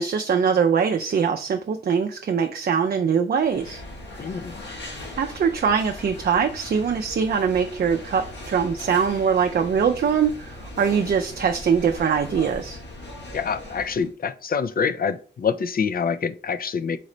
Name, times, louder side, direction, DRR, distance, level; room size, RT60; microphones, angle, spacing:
voice 1, 0.0-3.8 5.2-12.8, right 6 dB, 55° right, 0.4 m, -22 dB
sound 1, 3.4-14.1, left 1 dB, 65° left, 1.2 m, -39 dB
voice 2, 4.2-4.5 13.3-17.0, left 6 dB, 50° left, 0.4 m, -26 dB
4.1 x 3.1 x 3.8 m
cardioid pair, 75°, 19 cm